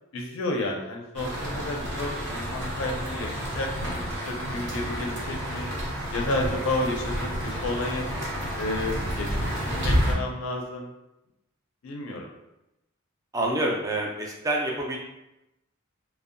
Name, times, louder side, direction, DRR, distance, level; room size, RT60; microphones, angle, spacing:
voice 1, 0.1-5.7 6.1-7.3 7.6-8.1 8.6-10.9 11.8-12.3, left 2 dB, 70° left, 0 dB, 0.4 m, -31 dB
sound 1, 1.1-10.1, equal, 55° right, 0.7 m, -30 dB
voice 2, 13.3-15.0, right 1 dB, 15° right, -1 dB, 0.4 m, -27 dB
2.6 x 2.0 x 2.5 m, 0.92 s
head